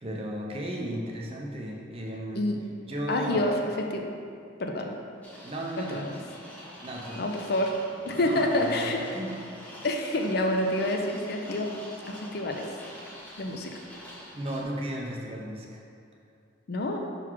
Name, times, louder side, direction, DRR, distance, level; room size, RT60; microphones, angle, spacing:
voice 1, 0.0-2.4 2.9-3.6 5.4-6.1 6.8-7.2 8.2-9.3 14.3-15.8, right 1 dB, 30° right, -1 dB, 0.6 m, -35 dB
voice 2, 3.1-3.5 4.6-4.9 5.8-6.0 7.2-7.8 8.0-9.0 9.8-11.7 12.1-12.7 13.4-13.7 16.7-17.0, left 1 dB, 50° left, 2 dB, 0.5 m, -27 dB
sound 1, 5.2-14.6, equal, 10° left, 0.8 m, -46 dB
5.9 x 3.9 x 4.5 m, 2.4 s
head